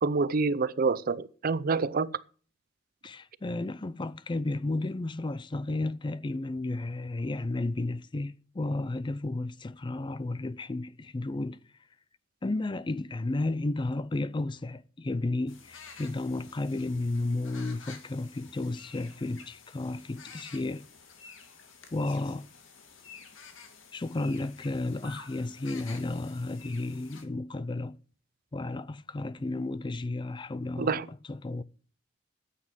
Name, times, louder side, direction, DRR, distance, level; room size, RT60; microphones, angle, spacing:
voice 1, 0.0-2.2 30.8-31.1, right 4 dB, 50° right, 0.6 m, -27 dB
voice 2, 3.0-11.6 12.4-20.8 21.9-22.5 23.9-28.0 28.5-31.6, left 2 dB, 25° left, 0.5 m, -33 dB
sound 1, 15.5-27.2, left 5 dB, 85° left, 2.2 m, -50 dB
9.7 x 8.3 x 7.4 m
head